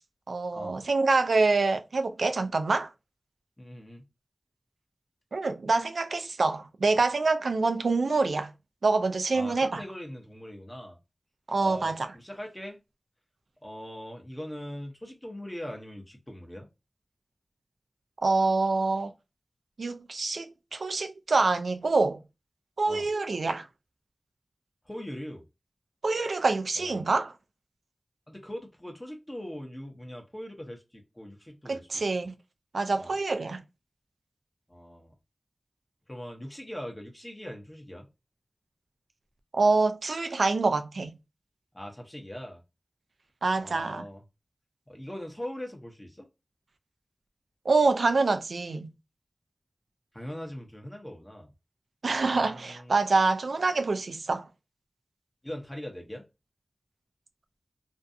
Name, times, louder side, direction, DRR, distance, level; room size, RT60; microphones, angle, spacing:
voice 1, 0.3-2.9 5.3-8.5 8.8-9.8 11.5-12.1 18.2-19.1 19.8-22.2 22.8-23.6 26.0-27.3 31.7-32.4 32.7-33.6 39.5-41.1 43.4-44.0 47.7-48.9 52.0-54.5, right 3 dB, 90° right, 0.3 m, -26 dB
voice 2, 3.6-4.0 9.3-11.0 11.6-12.8 13.6-16.7 22.9-23.1 24.9-25.4 26.8-26.9 28.3-32.0 33.0-33.1 34.7-35.1 36.1-38.1 41.7-42.6 43.6-44.2 44.9-46.3 50.1-51.5 52.2-52.9 55.4-56.2, equal, 20° left, 0.7 m, -41 dB
2.5 x 2.3 x 2.5 m
wide cardioid pair, 55°, 0 cm